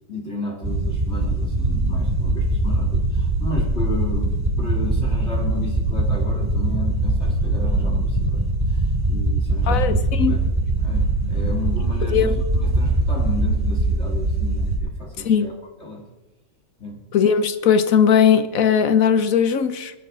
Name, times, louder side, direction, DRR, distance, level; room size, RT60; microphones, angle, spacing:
voice 1, 0.1-10.0 10.2-10.5 10.8-16.1 16.8-17.0, left 2 dB, 35° left, 2.7 m, -33 dB
sound 1, 0.6-14.8, right 2 dB, 20° right, 2.6 m, -22 dB
voice 2, 9.7-10.3 12.1-12.3 15.2-15.5 17.1-19.9, left 7 dB, 60° left, 1.0 m, -18 dB
22.5 x 11.5 x 3.7 m
omnidirectional pair, 2.2 m